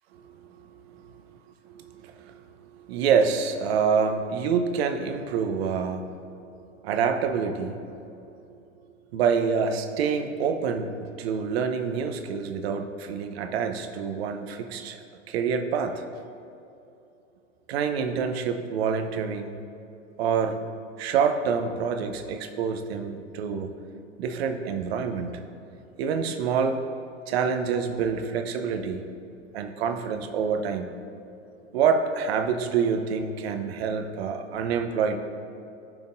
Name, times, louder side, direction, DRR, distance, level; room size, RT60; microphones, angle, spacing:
voice 1, 0.6-1.1 1.6-2.4 2.7-6.2 6.8-7.8 9.1-16.0 17.7-19.6 20.2-20.6 21.0-23.7 24.2-25.4 26.0-26.8 27.3-29.0 29.5-30.9 31.7-35.2, right 6 dB, 55° right, 7 dB, 0.9 m, -27 dB
15.5 x 5.3 x 2.6 m, 2.7 s
figure-of-eight pair, 95°, 38 cm